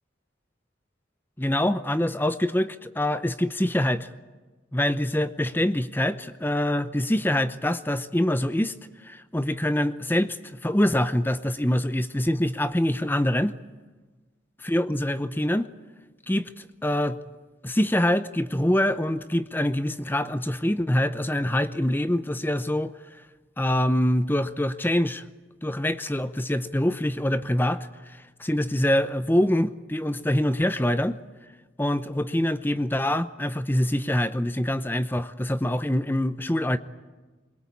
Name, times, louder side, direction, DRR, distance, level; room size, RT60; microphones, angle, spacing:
voice 1, 1.4-4.1 4.7-8.7 9.0-10.4 10.6-13.5 14.6-15.7 16.3-17.2 17.6-22.9 23.6-25.2 25.6-27.9 28.4-31.2 31.8-36.8, left 1 dB, 10° left, 12 dB, 0.7 m, -25 dB
22.5 x 22.0 x 8.5 m, 1.3 s
head